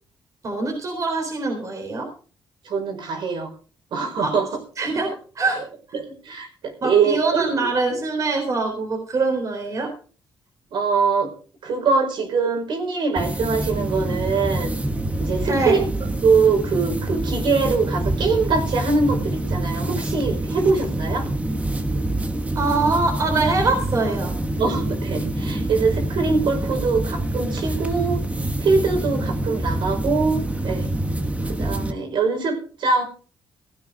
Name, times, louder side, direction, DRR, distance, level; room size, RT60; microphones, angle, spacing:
voice 1, 0.4-2.1 4.2-4.3 4.8-5.6 6.8-9.9 15.5-15.8 22.5-24.3, right 3 dB, 40° right, 2 dB, 3.9 m, -23 dB
voice 2, 2.6-3.5 3.9-4.5 5.6-5.7 5.9-7.4 10.7-11.3 11.6-14.7 15.2-21.3 24.6-28.2 28.6-30.9 31.5-33.0, right 4 dB, 70° right, 2 dB, 5.5 m, -23 dB
sound 1, 13.2-31.9, right 1 dB, 15° right, 1.5 m, -26 dB
16.0 x 8.8 x 5.4 m, 0.40 s
cardioid pair, 130°, 8 cm